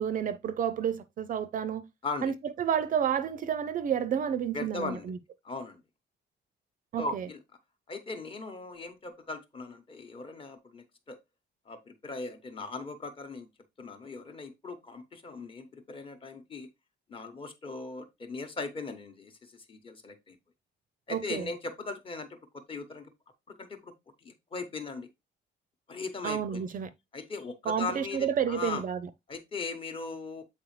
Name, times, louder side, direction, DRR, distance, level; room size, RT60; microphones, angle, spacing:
voice 1, 0.0-1.8 2.2-5.2 6.9-7.3 21.1-21.5 26.2-26.9 27.7-29.0, right 8 dB, 45° right, 0.4 m, -30 dB
voice 2, 4.5-5.1 5.4-5.8 7.0-7.4 7.9-11.2 11.7-13.5 13.8-16.7 17.1-20.4 21.1-23.1 23.5-23.9 24.2-25.1 25.9-26.7 27.1-28.8 29.3-30.4, left 3 dB, 30° left, 0.9 m, -39 dB
7.6 x 4.2 x 3.1 m
cardioid pair, 180°, 19 cm